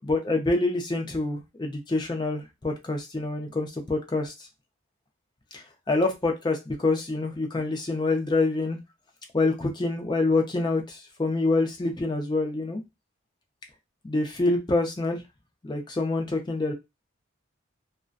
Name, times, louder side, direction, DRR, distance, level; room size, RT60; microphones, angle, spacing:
voice 1, 0.0-4.5 5.5-8.8 9.3-12.8 14.0-15.2 15.6-16.7, left 2 dB, 20° left, 3 dB, 0.4 m, -26 dB
2.5 x 2.2 x 2.3 m, 0.22 s
head